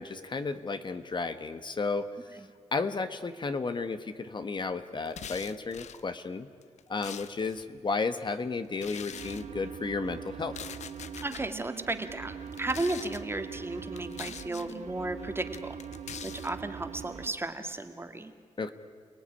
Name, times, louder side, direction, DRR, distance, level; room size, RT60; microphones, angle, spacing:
voice 1, 0.0-2.1 2.7-6.5 6.9-10.5 18.6-18.7, left 4 dB, 40° left, 9 dB, 1.3 m, -33 dB
sound 1, 5.1-6.0 6.6-7.6 8.8-9.4 10.4-11.4 12.5-13.2 14.0-14.7 15.5-16.5, left 8 dB, 80° left, 0.9 m, -43 dB
sound 2, 9.1-17.3, right 7 dB, 80° right, 2.0 m, -42 dB
voice 2, 11.2-15.8 16.2-18.3, right 2 dB, 20° right, 7 dB, 2.0 m, -34 dB
29.5 x 19.0 x 10.0 m, 2.1 s
cardioid pair, 100°, 12 cm